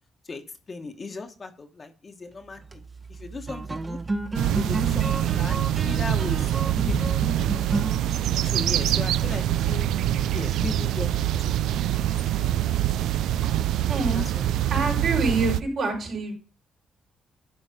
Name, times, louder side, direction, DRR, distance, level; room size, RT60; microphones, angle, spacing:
voice 1, 0.7-2.8 3.2-4.0 4.5-5.6 5.8-6.5 6.9-7.5 8.5-9.9 10.3-11.1 11.8-12.1 12.4-12.7 13.8-14.4, left 4 dB, 35° left, 6 dB, 1.1 m, -36 dB
sound 1, 2.5-12.1, right 2 dB, 25° right, 1.0 m, -34 dB
sound 2, 4.3-15.6, right 12 dB, 85° right, 0.4 m, -25 dB
voice 2, 13.9-14.2 14.7-16.3, right 3 dB, 65° right, 0 dB, 4.0 m, -26 dB
11.0 x 4.0 x 5.0 m, 0.35 s
cardioid pair, 90°, 0 cm